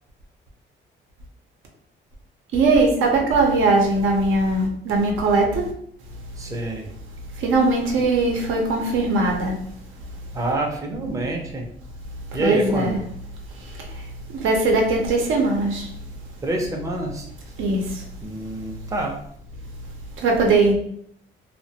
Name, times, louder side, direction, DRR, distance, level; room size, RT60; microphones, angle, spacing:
voice 1, 2.5-5.7 7.3-9.6 12.3-13.0 13.5-15.9 17.6-18.1 20.2-20.7, right 3 dB, 85° right, 0 dB, 0.6 m, -20 dB
voice 2, 6.4-6.9 10.3-11.6 12.3-12.9 16.4-17.3 18.2-19.2, right 1 dB, 15° right, 1 dB, 0.5 m, -27 dB
2.3 x 2.1 x 2.7 m, 0.68 s
cardioid pair, 90°, 20 cm